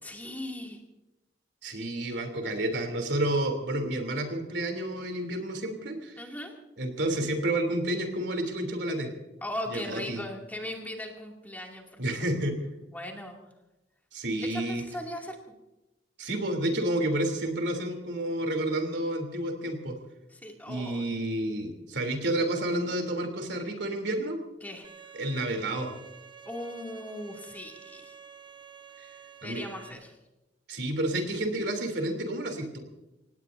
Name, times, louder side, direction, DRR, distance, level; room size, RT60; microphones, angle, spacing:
voice 1, 0.0-0.8 6.2-6.5 9.4-12.4 12.9-13.4 14.4-15.4 20.3-21.1 24.6-25.1 26.4-28.1 29.0-29.2 29.4-30.2, left 1 dB, 10° left, 0 dB, 2.6 m, -39 dB
voice 2, 1.6-6.2 6.8-9.1 9.7-10.2 12.0-12.6 14.1-14.8 16.2-20.0 20.7-24.4 25.1-25.9 29.0-29.1 29.4-29.6 30.7-32.8, right 1 dB, 70° right, 5 dB, 3.3 m, -30 dB
Bowed string instrument, 24.8-29.9, right 6 dB, 25° right, 1.0 m, -49 dB
27.0 x 18.5 x 2.7 m, 0.98 s
head